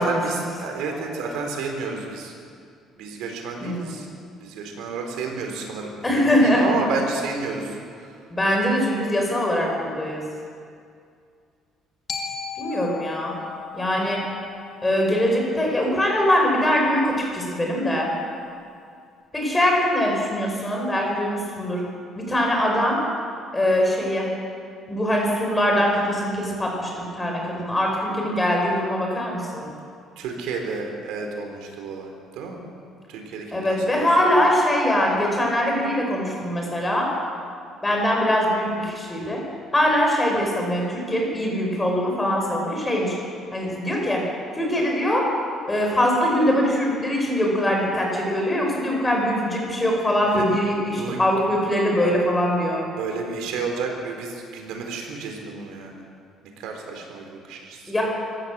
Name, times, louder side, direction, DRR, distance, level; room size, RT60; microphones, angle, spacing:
voice 1, 0.0-2.3 2.9-4.1 4.4-8.1 30.2-32.6 33.1-34.0 50.3-50.5 51.0-51.2 52.0-52.2 52.9-56.0 56.6-57.8, right 4 dB, 85° right, 2 dB, 4.1 m, -31 dB
voice 2, 3.6-4.0 6.0-6.7 8.3-10.2 12.6-13.3 13.7-14.2 14.8-18.1 19.3-21.8 22.2-23.0 23.5-24.3 24.9-29.7 33.5-37.1 37.8-39.4 39.7-43.2 43.5-44.2 44.6-45.3 45.7-52.8 57.9-58.0, left 1 dB, 15° left, -1 dB, 5.2 m, -22 dB
Glockenspiel, 12.1-16.2, left 6 dB, 35° left, 2.3 m, -37 dB
25.0 x 16.0 x 7.5 m, 2.3 s
cardioid pair, 140°, 0 cm